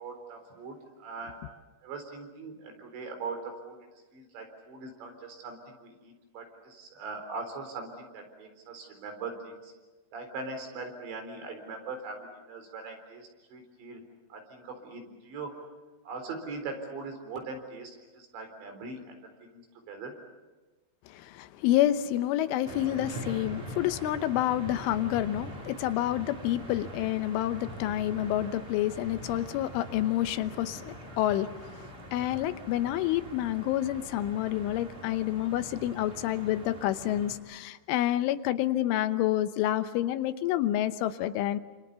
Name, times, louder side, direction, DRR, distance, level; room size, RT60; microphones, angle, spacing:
voice 1, 0.0-1.4 1.8-3.8 4.1-9.7 10.1-14.0 14.3-15.6 16.0-20.1, right 4 dB, 70° right, 5 dB, 6.2 m, -41 dB
voice 2, 21.4-31.5 32.1-41.6, left 13 dB, 90° left, 11 dB, 3.5 m, -28 dB
sound 1, 22.6-37.4, right 1 dB, 30° right, 5.0 m, -43 dB
28.5 x 27.0 x 7.0 m, 1.2 s
omnidirectional pair, 5.4 m